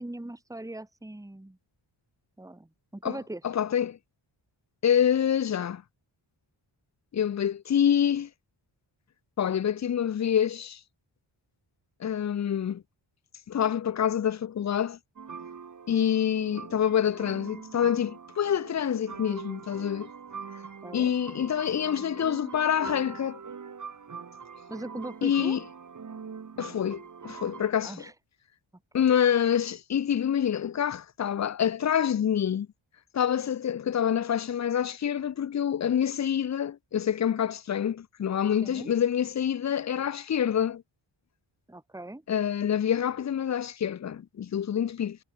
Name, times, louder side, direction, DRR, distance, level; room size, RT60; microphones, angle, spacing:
voice 1, 0.0-1.6 2.4-3.4 20.8-21.1 24.7-25.6 27.8-28.1 29.0-29.1 38.6-38.9 41.7-42.2, right 1 dB, 5° right, 2.0 m, -40 dB
voice 2, 3.4-4.0 4.8-5.8 7.1-8.3 9.4-10.8 12.0-12.8 13.5-15.0 15.9-20.1 20.9-23.4 25.2-25.6 26.6-28.0 28.9-32.7 33.1-40.8 42.3-45.2, left 9 dB, 35° left, 0.4 m, -26 dB
sound 1, 15.2-27.7, right 6 dB, 40° right, 1.6 m, -43 dB
wide cardioid pair, 150°, 48 cm